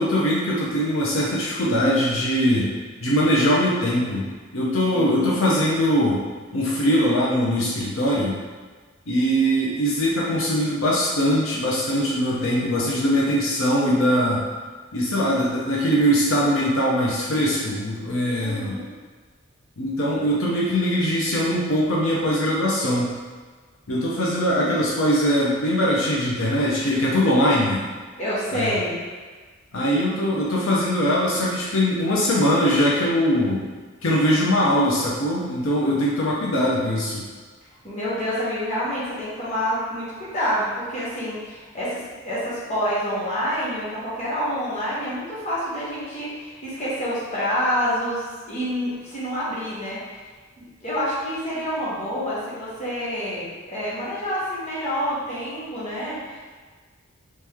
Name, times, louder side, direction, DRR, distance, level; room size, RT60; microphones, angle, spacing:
voice 1, 0.0-2.7 3.0-4.3 4.5-6.2 6.5-8.4 9.1-14.4 14.9-18.8 19.8-23.1 23.9-27.8 28.5-28.7 29.7-33.6 34.0-37.2, equal, 90° left, -5 dB, 0.8 m, -21 dB
voice 2, 4.9-5.3 18.4-18.9 28.2-29.0 37.8-50.0 50.6-56.4, equal, 35° left, -9 dB, 1.3 m, -27 dB
3.2 x 3.2 x 3.5 m, 1.4 s
head